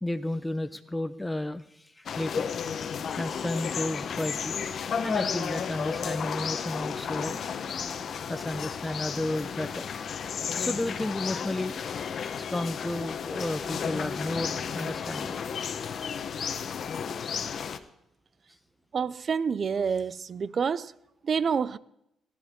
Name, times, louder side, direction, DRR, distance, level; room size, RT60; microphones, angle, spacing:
voice 1, 0.0-2.5 3.2-4.6 5.0-7.4 8.3-9.8 10.6-11.8 12.4-15.4, left 1 dB, 10° left, 0.7 m, -32 dB
sound 1, 2.1-17.8, left 7 dB, 55° left, 1.0 m, -33 dB
voice 2, 18.9-20.9 21.2-21.8, right 6 dB, 45° right, 0.6 m, -28 dB
18.5 x 12.0 x 3.7 m
cardioid pair, 90°, 0 cm